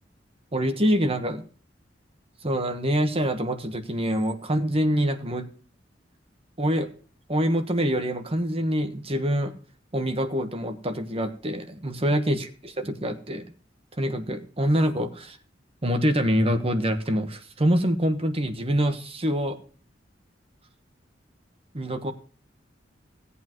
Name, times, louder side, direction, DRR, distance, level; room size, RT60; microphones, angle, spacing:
voice 1, 0.5-1.4 2.4-5.5 6.6-6.9 7.3-9.5 9.9-13.5 14.0-15.4 15.8-19.6 21.7-22.1, equal, 30° right, 7 dB, 1.2 m, -25 dB
17.5 x 8.4 x 3.0 m, 0.41 s
head